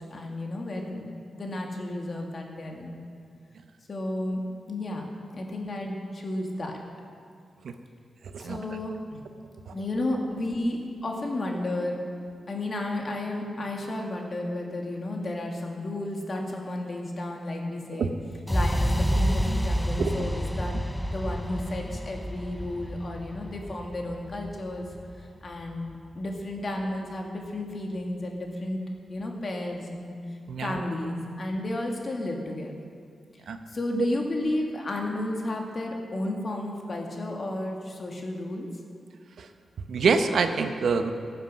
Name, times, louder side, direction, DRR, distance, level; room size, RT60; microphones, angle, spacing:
voice 1, 0.1-3.0 3.9-4.4 4.7-6.8 8.4-9.2 9.7-12.0 12.5-18.1 18.5-20.8 21.1-24.9 25.4-28.8 29.1-30.2 30.6-32.8 33.7-38.7, left 1 dB, 45° left, 1 dB, 2.1 m, -32 dB
voice 2, 8.2-8.6 9.7-9.8 18.0-18.1 20.0-20.1 30.5-30.8 33.5-33.6 34.0-34.1 39.4-39.5 39.9-41.1, right 5 dB, 75° right, 7 dB, 0.8 m, -26 dB
sound 1, 18.5-26.4, equal, 5° left, 0.7 m, -29 dB
14.5 x 8.0 x 6.3 m, 2.3 s
cardioid pair, 75°, 0 cm